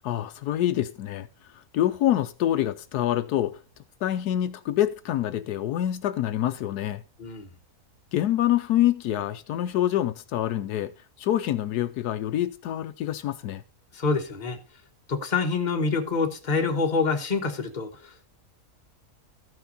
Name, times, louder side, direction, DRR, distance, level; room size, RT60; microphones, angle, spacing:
voice 1, 0.0-1.3 1.5-3.6 4.0-7.0 8.1-10.9 11.2-13.6, left 12 dB, 80° left, 1.2 m, -26 dB
voice 2, 13.9-14.6 15.1-18.3, left 4 dB, 30° left, 1.3 m, -26 dB
14.0 x 5.9 x 4.0 m
omnidirectional pair, 1.7 m